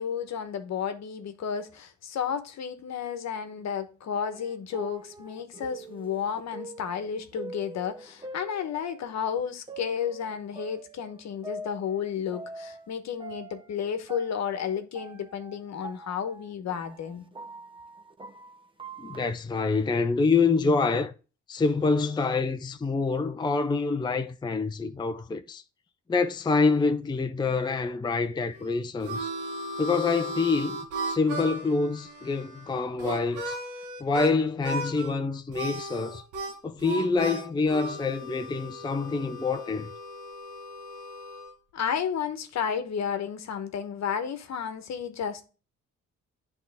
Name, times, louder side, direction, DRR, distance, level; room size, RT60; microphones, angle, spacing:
voice 1, 0.0-17.2 41.7-45.4, left 7 dB, 60° left, 1.1 m, -32 dB
sound 1, 4.3-9.2 9.7-12.9 13.2-19.3, right 2 dB, 15° right, 0.8 m, -44 dB
voice 2, 19.0-21.1 21.5-25.6 26.1-29.3 29.8-30.8 31.1-33.6 34.0-36.2 36.6-39.9, left 4 dB, 15° left, 0.5 m, -26 dB
Harmonica, 28.5-34.3 34.6-35.1 35.5-41.5, right 2 dB, 85° right, 1.6 m, -36 dB
9.5 x 3.6 x 3.5 m
cardioid pair, 90°, 30 cm